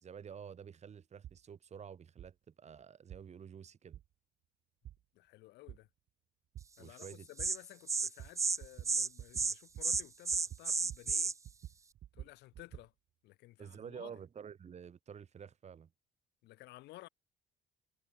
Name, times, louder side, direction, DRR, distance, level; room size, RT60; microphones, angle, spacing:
voice 1, 0.0-4.0 6.8-7.3 13.6-15.9, right 7 dB, 40° right, 4.2 m, -50 dB
sound 1, 1.2-1.4 2.2-2.3 3.1-3.2 3.9-4.0 4.9-5.0 5.7-5.8 6.6-6.7 7.4-7.5 8.2-8.3 8.6-8.9 9.2-9.5 9.7-10.0 10.3-11.2 11.5-12.9, right 12 dB, 60° right, 3.9 m, -48 dB
voice 2, 5.1-5.9 6.8-11.3 12.1-12.9 13.2-14.2 16.4-17.1, left 18 dB, 85° left, 7.3 m, -55 dB
Insect, 7.0-7.1 7.4-7.6 7.9-8.1 8.4-8.6 8.8-9.1 9.3-9.6 9.8-11.3, right 4 dB, 20° right, 0.5 m, -32 dB
cardioid pair, 110°, 17 cm